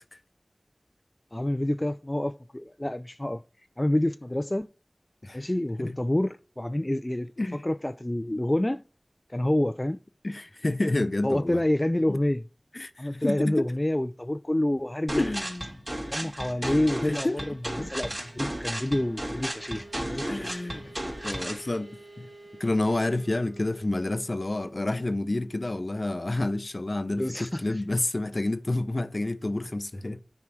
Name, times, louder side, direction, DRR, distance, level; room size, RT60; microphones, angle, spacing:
voice 1, 1.3-3.4 3.8-4.7 5.3-8.8 9.3-10.0 11.2-12.4 13.0-15.3 16.1-20.6 20.8-20.9 27.2-27.8, left 1 dB, 25° left, 0.4 m, -28 dB
voice 2, 10.2-11.6 12.1-12.2 12.7-13.5 15.2-15.7 16.2-16.3 17.0-17.4 17.8-17.9 20.3-20.9 21.2-21.9 22.2-22.3 22.6-30.2, left 2 dB, 50° left, 0.8 m, -29 dB
sound 1, 14.3-26.9, right 2 dB, 90° right, 2.3 m, -52 dB
sound 2, 15.1-21.6, right 1 dB, 30° right, 2.9 m, -34 dB
9.7 x 4.5 x 6.1 m
wide cardioid pair, 50°, 0 cm